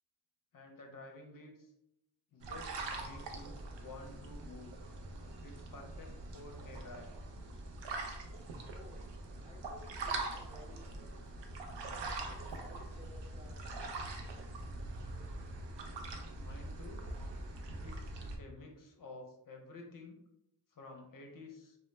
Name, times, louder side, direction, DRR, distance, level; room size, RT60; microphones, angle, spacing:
voice 1, 0.5-1.7 2.3-3.6 3.8-4.7 5.4-7.1 16.4-17.0 17.8-20.2 20.8-21.8, left 2 dB, 50° left, 2 dB, 0.5 m, -51 dB
sound 1, 2.4-18.4, right 2 dB, 75° right, 0.5 m, -43 dB
voice 2, 8.7-9.1 9.4-11.3 12.2-14.0 14.2-14.4, left 1 dB, 15° right, -3 dB, 0.5 m, -57 dB
2.1 x 2.0 x 3.1 m, 0.82 s
wide cardioid pair, 80°, 43 cm